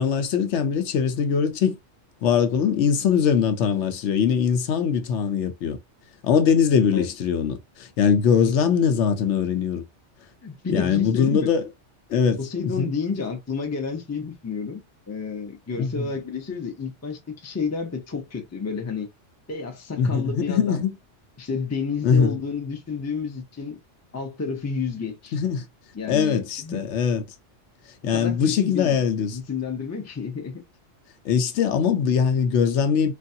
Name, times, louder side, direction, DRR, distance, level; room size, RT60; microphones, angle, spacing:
voice 1, 0.0-1.8 2.2-5.8 6.2-9.8 10.7-11.6 12.1-12.9 15.8-16.1 20.0-20.9 22.0-22.4 25.3-25.7 26.1-27.2 28.0-29.4 31.2-33.1, left 7 dB, 70° left, 0.8 m, -22 dB
voice 2, 10.4-11.5 12.4-14.8 15.1-19.1 19.5-20.8 21.4-23.8 24.1-25.4 25.9-26.8 28.0-29.0 29.3-30.6, left 5 dB, 20° left, 0.4 m, -30 dB
3.3 x 2.3 x 2.6 m
omnidirectional pair, 1.3 m